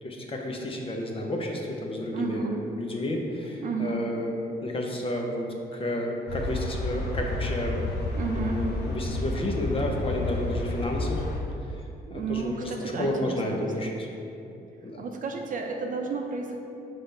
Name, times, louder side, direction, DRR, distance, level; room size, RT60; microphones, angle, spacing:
voice 1, 0.0-4.3 4.6-7.8 8.3-11.2 11.7-11.8 12.1-14.1 14.8-15.0, left 1 dB, 35° left, 1 dB, 0.8 m, -31 dB
voice 2, 2.1-2.7 3.6-4.1 8.1-8.7 12.1-13.7 15.0-16.6, right 4 dB, 55° right, 2 dB, 0.6 m, -32 dB
sound 1, 6.3-11.4, left 2 dB, 80° left, 0.9 m, -31 dB
5.8 x 3.4 x 5.4 m, 2.8 s
cardioid pair, 125°, 17 cm